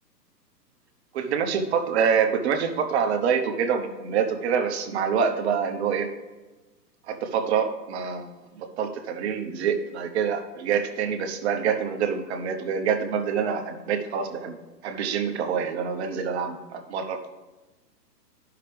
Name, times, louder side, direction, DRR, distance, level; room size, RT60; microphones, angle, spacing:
voice 1, 1.1-6.1 7.1-14.6 14.8-17.2, right 6 dB, 40° right, 6 dB, 1.0 m, -26 dB
12.5 x 5.8 x 3.3 m, 1.2 s
hypercardioid pair, 130°, 50 cm